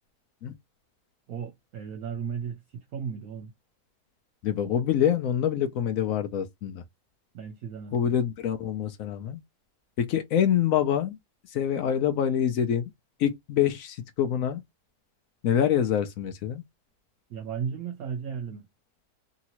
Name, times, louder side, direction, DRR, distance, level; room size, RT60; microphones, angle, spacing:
voice 1, 1.3-3.5 7.3-8.1 17.3-18.7, right 7 dB, 65° right, 1.0 m, -35 dB
voice 2, 4.4-6.8 7.9-9.4 10.0-11.2 11.5-12.9 13.2-14.6 15.4-16.6, left 9 dB, 70° left, 0.9 m, -26 dB
2.9 x 2.8 x 2.8 m
omnidirectional pair, 1.8 m